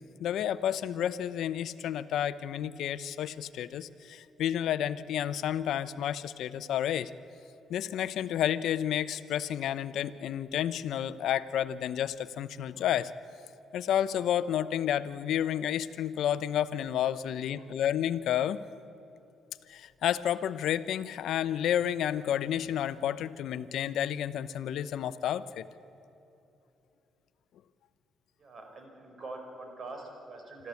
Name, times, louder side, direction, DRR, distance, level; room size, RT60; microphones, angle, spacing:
voice 1, 0.2-7.1 7.7-13.1 13.7-18.6 19.7-25.7, left 10 dB, 75° left, 15 dB, 0.7 m, -30 dB
voice 2, 28.4-30.7, right 2 dB, 45° right, 3 dB, 5.2 m, -44 dB
26.0 x 13.5 x 8.3 m, 2.9 s
cardioid pair, 90°, 0 cm